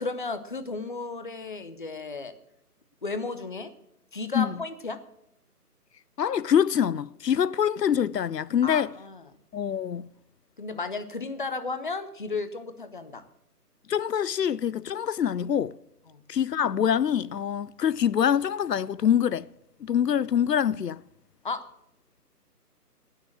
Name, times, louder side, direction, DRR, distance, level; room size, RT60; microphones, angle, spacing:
voice 1, 0.0-2.3 3.0-3.7 4.1-5.0 8.6-9.2 10.6-13.2 16.1-16.2 21.4-21.7, left 3 dB, 30° left, 0.7 m, -34 dB
voice 2, 6.2-8.9 9.5-10.1 13.9-15.8 16.3-19.5 19.8-21.0, left 9 dB, 85° left, 0.5 m, -25 dB
18.5 x 6.5 x 7.2 m
figure-of-eight pair, 150°, 48 cm